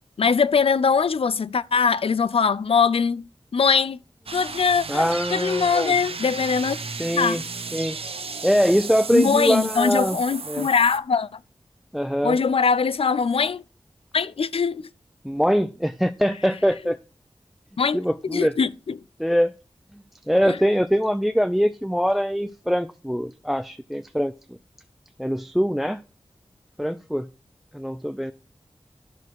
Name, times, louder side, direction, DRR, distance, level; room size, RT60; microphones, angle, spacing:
voice 1, 0.2-3.2 3.5-4.0 4.3-6.8 7.1-7.4 9.1-11.3 12.2-13.6 14.1-14.9 17.8-18.0 18.3-19.0 20.5-20.6, left 5 dB, 75° left, 0.5 m, -22 dB
sound 1, 4.3-11.0, right 4 dB, 75° right, 0.9 m, -34 dB
voice 2, 4.9-5.9 7.0-7.4 7.7-8.0 8.4-10.2 10.5-10.7 11.9-12.4 15.2-17.0 17.9-18.5 19.2-19.5 20.3-24.6 25.2-26.0 26.8-27.3 27.7-28.3, equal, ahead, 0.5 m, -23 dB
10.5 x 6.2 x 4.7 m
cardioid pair, 45°, 10 cm